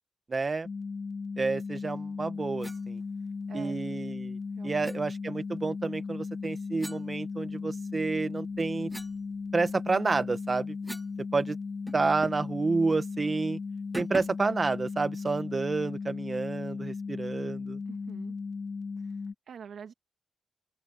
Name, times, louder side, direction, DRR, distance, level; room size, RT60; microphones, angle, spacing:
voice 1, 0.3-0.7 1.4-3.0 3.5-4.4 4.6-8.9 9.5-10.7 11.3-11.6 11.9-13.6 13.9-17.8, right 3 dB, 30° right, 1.2 m, -29 dB
sound 1, 0.6-19.3, left 4 dB, 40° left, 2.3 m, -37 dB
sound 2, 2.6-2.8 4.8-5.0 6.8-7.8 8.3-11.2 11.5-11.6 11.9-12.5 12.9-13.1 13.9-14.5, right 1 dB, 5° right, 0.6 m, -44 dB
voice 2, 3.1-3.8 4.5-5.0 17.9-18.3 19.0-19.9, right 7 dB, 65° right, 2.2 m, -47 dB
wide cardioid pair, 135°, 0 cm